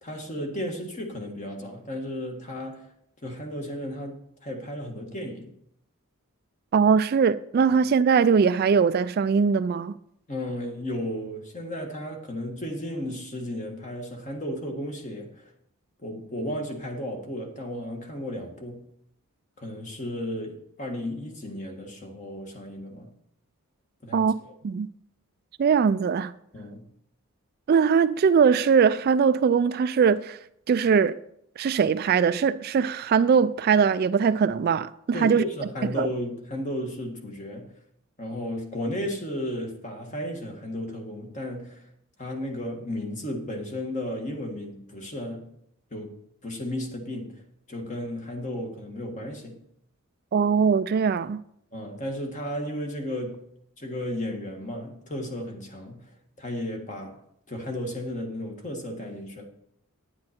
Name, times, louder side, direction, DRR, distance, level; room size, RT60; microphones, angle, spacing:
voice 1, 0.0-2.9 3.2-5.5 10.3-15.4 16.0-18.9 19.6-23.1 24.0-24.3 26.5-26.9 35.1-37.8 38.2-41.9 42.2-45.5 45.9-46.1 46.4-47.4 47.7-49.6 51.7-53.5 53.8-57.2 57.5-59.4, left 1 dB, 35° left, 1.7 m, -34 dB
voice 2, 6.7-9.9 24.1-24.3 24.6-24.9 25.6-26.3 27.7-30.4 30.7-31.2 31.6-35.4 36.0-36.1 50.3-51.4, right 6 dB, 45° right, 0.3 m, -21 dB
9.7 x 9.5 x 4.4 m
head